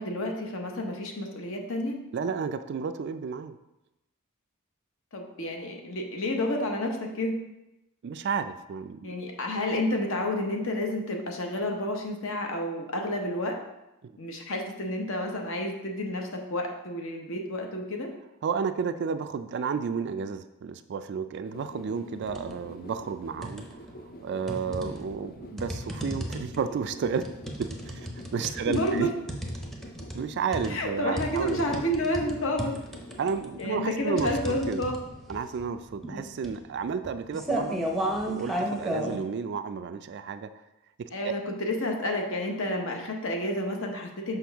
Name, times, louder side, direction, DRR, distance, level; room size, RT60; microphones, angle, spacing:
voice 1, 0.0-2.0 5.1-7.3 9.0-13.6 14.2-18.1 24.9-25.0 28.7-29.1 30.7-32.7 33.6-35.0 36.1-36.2 39.0-39.3 41.1-44.4, left 1 dB, 60° left, 2 dB, 1.0 m, -30 dB
voice 2, 2.1-3.6 8.0-9.2 14.0-14.1 18.4-23.8 24.2-27.3 27.6-29.1 30.1-31.8 33.2-34.3 34.7-34.9 35.3-37.8 38.3-40.5 41.0-41.3, right 6 dB, 50° right, 11 dB, 0.3 m, -32 dB
sound 1, 21.4-33.4, left 1 dB, 40° left, 0.5 m, -47 dB
sound 2, 22.2-22.6 23.0-23.9 24.5-39.2, right 1 dB, ahead, 0.7 m, -34 dB
6.0 x 5.4 x 3.5 m, 0.95 s
head